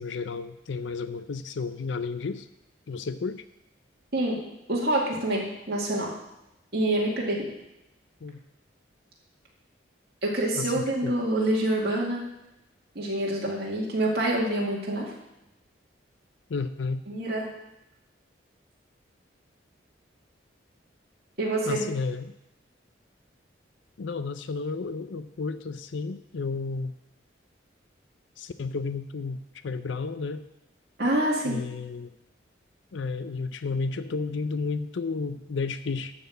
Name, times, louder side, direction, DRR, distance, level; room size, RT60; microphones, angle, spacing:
voice 1, 0.0-2.5 2.9-3.4 8.2-8.4 10.5-11.2 16.5-17.0 21.7-22.3 24.0-26.9 28.4-29.4 29.6-30.4 31.5-32.1 32.9-36.1, left 4 dB, 70° left, 11 dB, 0.5 m, -32 dB
voice 2, 4.7-6.1 6.7-7.4 10.2-12.2 13.0-15.1 17.1-17.5 21.4-21.9 31.0-31.6, right 1 dB, 55° right, -4 dB, 2.2 m, -26 dB
12.0 x 4.2 x 8.0 m, 0.89 s
head